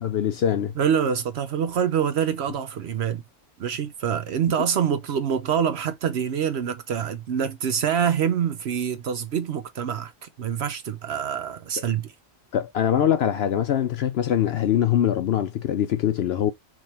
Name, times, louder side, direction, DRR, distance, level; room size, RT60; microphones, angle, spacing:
voice 1, 0.0-0.7 12.5-16.5, left 10 dB, 65° left, 0.7 m, -23 dB
voice 2, 0.8-3.2 3.6-12.1, right 8 dB, 60° right, 0.8 m, -25 dB
3.6 x 3.1 x 4.2 m
omnidirectional pair, 1.4 m